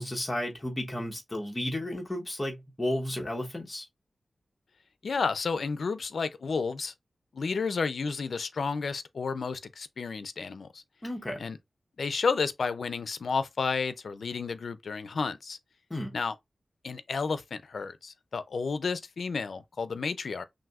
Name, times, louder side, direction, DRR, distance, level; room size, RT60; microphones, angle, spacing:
voice 1, 0.0-3.9 11.0-11.4 15.9-16.2, left 1 dB, 20° left, 1.1 m, -33 dB
voice 2, 5.0-6.9 7.3-10.8 11.4-11.6 12.0-15.6 16.1-16.3 16.8-20.4, left 5 dB, 75° left, 0.5 m, -31 dB
6.0 x 2.6 x 2.4 m
wide cardioid pair, 120°, 0 cm